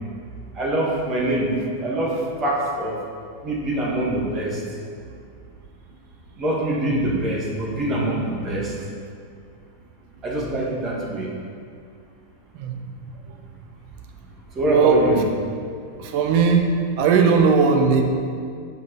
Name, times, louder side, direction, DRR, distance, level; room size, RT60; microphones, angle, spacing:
voice 1, 0.5-1.6 1.8-3.0 3.4-4.6 6.4-8.7 10.2-11.3 14.5-15.2, right 1 dB, 25° right, -4 dB, 1.8 m, -24 dB
voice 2, 14.7-15.1 16.0-16.6 17.0-18.0, right 5 dB, 45° right, 4 dB, 0.8 m, -17 dB
8.2 x 5.2 x 4.1 m, 2.2 s
figure-of-eight pair, 90°, 0 cm